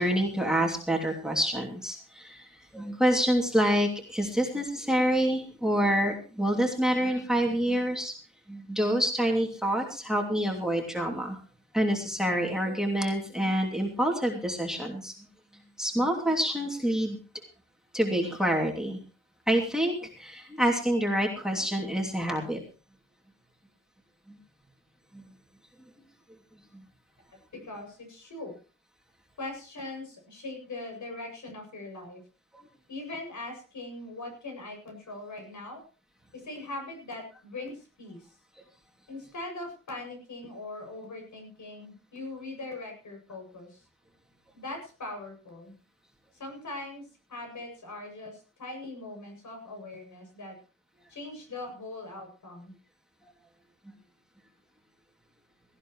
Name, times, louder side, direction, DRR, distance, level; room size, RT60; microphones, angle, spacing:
voice 1, 0.0-2.5 2.7-8.1 8.5-11.4 11.7-15.1 15.8-17.2 17.9-19.0 19.5-22.6, equal, ahead, 1 dB, 2.8 m, -27 dB
voice 2, 27.5-28.5 29.4-32.2 32.9-35.8 36.3-38.3 39.1-43.8 44.5-45.7 46.3-47.0 47.3-50.6 51.1-52.7, left 2 dB, 65° left, 3 dB, 7.7 m, -41 dB
17.5 x 15.5 x 3.2 m, 0.35 s
wide cardioid pair, 135°, 32 cm